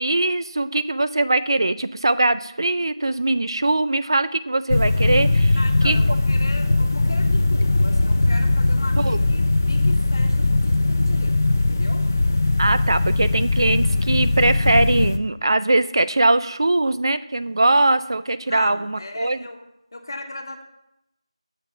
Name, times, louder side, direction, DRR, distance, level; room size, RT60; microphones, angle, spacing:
voice 1, 0.0-5.6 5.8-6.0 9.0-9.2 12.6-19.4, right 2 dB, 50° right, 13 dB, 0.4 m, -21 dB
sound 1, 4.7-15.2, left 2 dB, 25° left, 0.3 m, -20 dB
voice 2, 5.5-11.4 11.6-12.0 18.5-19.6 19.9-20.6, left 2 dB, 40° left, 4 dB, 1.0 m, -37 dB
6.7 x 5.8 x 5.7 m, 0.86 s
figure-of-eight pair, 175°, 3 cm